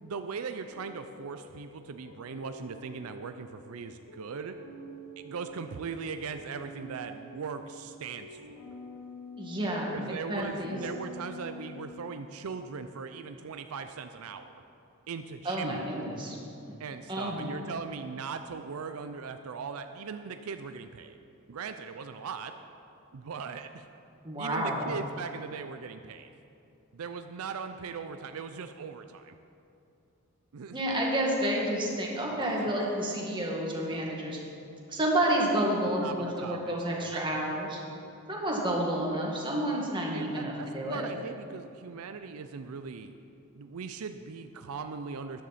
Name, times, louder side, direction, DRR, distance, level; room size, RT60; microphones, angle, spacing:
voice 1, 0.0-4.6 5.2-8.6 9.9-14.5 15.1-15.8 16.8-21.2 21.5-22.5 23.1-23.8 24.4-26.3 26.9-29.3 30.5-30.8 32.4-32.7 36.0-37.1 40.1-43.1 43.5-45.4, right 5 dB, 85° right, 8 dB, 0.5 m, -39 dB
sound 1, 0.7-12.4, left 1 dB, 85° left, 1.9 m, -48 dB
voice 2, 9.4-10.8 15.4-16.4 17.1-17.5 24.2-24.9 30.7-34.4 34.9-37.8 38.3-41.0, right 1 dB, 25° right, -3 dB, 1.9 m, -30 dB
13.0 x 10.5 x 4.2 m, 2.7 s
head